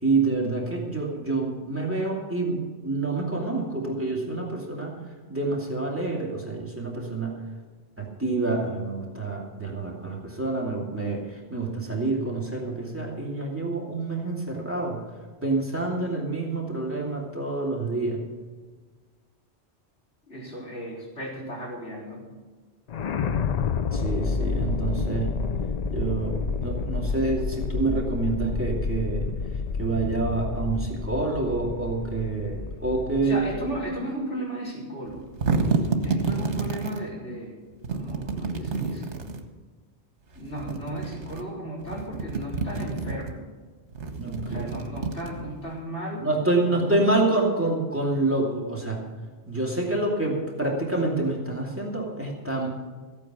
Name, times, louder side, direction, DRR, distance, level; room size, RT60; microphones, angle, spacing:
voice 1, 0.0-4.9 5.3-7.4 8.0-15.0 15.4-18.2 23.9-25.3 25.9-29.2 29.8-33.4 44.2-44.7 46.2-49.0 49.5-52.7, right 2 dB, 10° right, -2 dB, 2.5 m, -27 dB
voice 2, 20.3-22.2 33.2-35.3 36.0-37.6 37.9-39.2 40.3-43.4 44.4-46.3 46.7-47.0, equal, 85° left, -5 dB, 4.4 m, -35 dB
sound 1, 22.9-34.0, left 5 dB, 50° left, 0.5 m, -29 dB
sound 2, 35.1-37.0 37.8-39.5 40.4-41.4 41.8-43.3 43.9-45.7, right 4 dB, 75° right, 1.5 m, -29 dB
14.5 x 8.9 x 6.1 m, 1.4 s
omnidirectional pair, 1.2 m